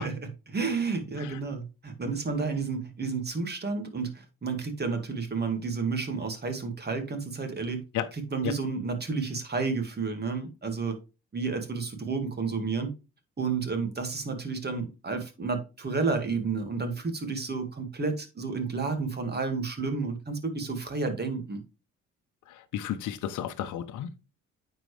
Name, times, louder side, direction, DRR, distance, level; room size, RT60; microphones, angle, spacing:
voice 1, 0.0-7.8 8.1-11.0 11.3-12.9 13.4-21.6, right 4 dB, 35° right, 2.0 m, -31 dB
voice 2, 22.5-24.1, left 10 dB, 80° left, 0.8 m, -33 dB
9.2 x 4.6 x 3.3 m
cardioid pair, 90°, 30 cm